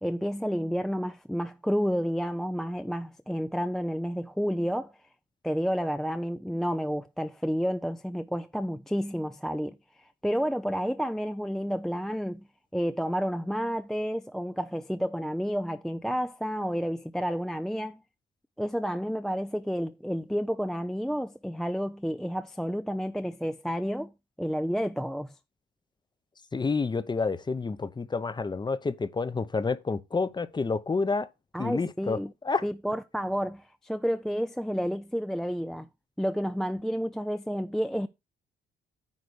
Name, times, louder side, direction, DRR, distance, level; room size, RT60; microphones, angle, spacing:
voice 1, 0.0-4.9 5.4-12.4 12.7-18.0 18.6-24.1 24.4-25.3 31.5-32.3 32.6-35.9 36.2-38.1, equal, ahead, 0.4 m, -30 dB
voice 2, 26.5-31.3 31.6-32.2 32.4-32.6, left 4 dB, 20° left, 0.7 m, -29 dB
9.4 x 3.3 x 6.4 m
cardioid pair, 90°, 20 cm